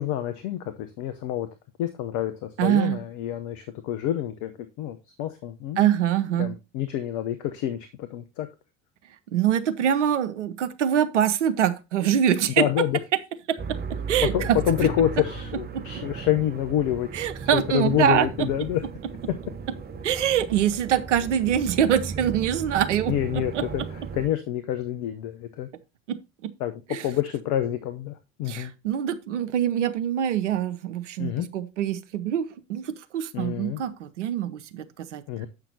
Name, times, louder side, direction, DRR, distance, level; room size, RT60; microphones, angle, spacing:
voice 1, 0.0-1.5 1.8-4.5 4.8-5.9 6.4-8.5 12.6-13.0 14.3-17.1 17.5-18.8 23.1-25.7 26.6-28.7 31.2-31.5 33.3-33.8 35.3-35.5, left 12 dB, 55° left, 1.0 m, -27 dB
voice 2, 2.6-3.0 5.8-6.5 9.3-12.6 13.5-13.8 14.1-14.6 15.7-15.8 17.1-18.3 20.0-23.1 23.5-23.6 26.1-26.5 26.9-27.0 28.5-35.2, right 10 dB, 75° right, 0.8 m, -24 dB
sound 1, 13.6-24.3, right 4 dB, 25° right, 1.3 m, -36 dB
8.0 x 5.8 x 4.1 m
figure-of-eight pair, 65°, 36 cm